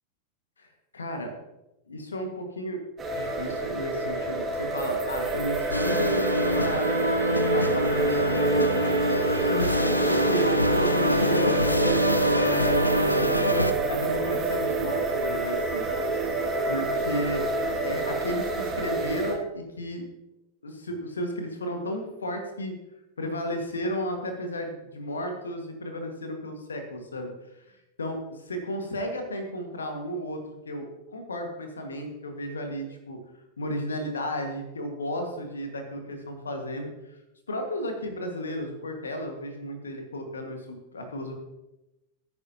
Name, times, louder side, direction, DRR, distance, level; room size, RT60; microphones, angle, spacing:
voice 1, 0.9-1.3 1.9-2.8 3.1-6.9 7.5-8.4 9.4-13.4 13.9-15.9 16.3-16.4 16.7-17.5 17.8-20.0 20.6-22.7 23.2-33.2 33.6-37.2 37.5-41.3, equal, 70° left, 4 dB, 1.7 m, -33 dB
sound 1, 3.0-19.3, right 3 dB, 20° right, 2.2 m, -27 dB
sound 2, 5.7-13.7, left 1 dB, 90° left, 0.6 m, -25 dB
16.5 x 9.5 x 2.9 m, 0.97 s
figure-of-eight pair, 90°, 0 cm